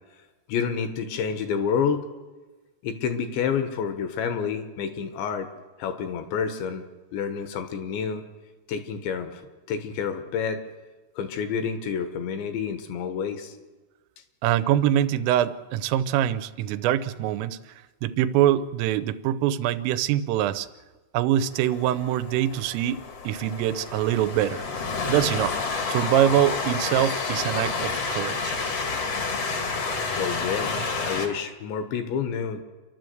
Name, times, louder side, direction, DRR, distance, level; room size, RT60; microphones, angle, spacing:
voice 1, 0.5-2.0 2.8-5.5 5.8-6.8 7.1-8.2 8.7-9.4 9.7-10.6 11.2-13.5 30.2-32.6, left 7 dB, 70° left, 8 dB, 3.4 m, -29 dB
voice 2, 14.4-17.6 18.0-20.7 21.1-24.6 25.1-25.6 25.9-28.5, right 11 dB, 90° right, 13 dB, 3.4 m, -24 dB
Train, 21.5-31.3, left 4 dB, 55° left, 1.8 m, -29 dB
28.5 x 12.0 x 7.9 m, 1.2 s
omnidirectional pair, 5.7 m